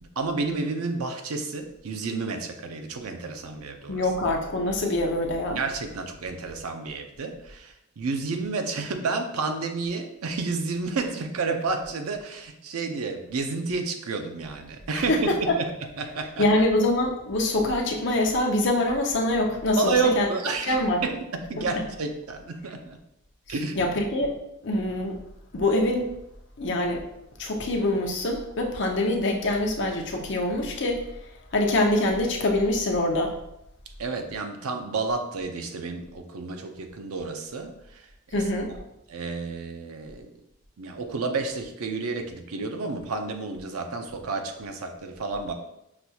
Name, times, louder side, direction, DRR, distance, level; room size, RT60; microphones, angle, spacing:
voice 1, 0.0-4.1 5.5-16.5 19.8-23.0 23.5-23.9 34.0-38.4 39.1-40.3 40.8-45.5, right 4 dB, 85° right, 5 dB, 0.5 m, -30 dB
voice 2, 3.9-5.6 15.1-15.6 16.4-20.3 20.7-21.0 21.6-21.7 23.8-24.4 24.6-25.2 25.5-26.1 26.6-27.0 27.4-31.0 31.5-33.4 38.3-38.7, left 1 dB, 55° left, 1 dB, 0.6 m, -24 dB
6.0 x 2.3 x 2.7 m, 0.82 s
head